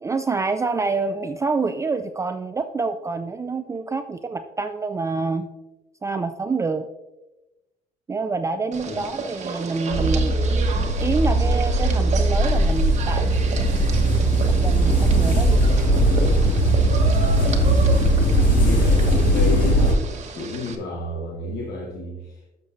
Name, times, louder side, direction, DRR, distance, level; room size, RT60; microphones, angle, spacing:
voice 1, 0.0-5.5 6.0-6.9 8.1-10.4 10.7-13.8 14.5-15.7, right 4 dB, 20° right, 8 dB, 0.4 m, -27 dB
sound 1, 8.7-20.8, right 4 dB, 40° right, 1.2 m, -33 dB
sound 2, 9.9-19.9, right 1 dB, 55° left, 1.9 m, -19 dB
voice 2, 17.1-17.6 18.6-20.0 20.3-22.4, left 2 dB, 75° left, -1 dB, 1.3 m, -31 dB
11.5 x 6.6 x 2.6 m, 1.0 s
cardioid pair, 110°, 17 cm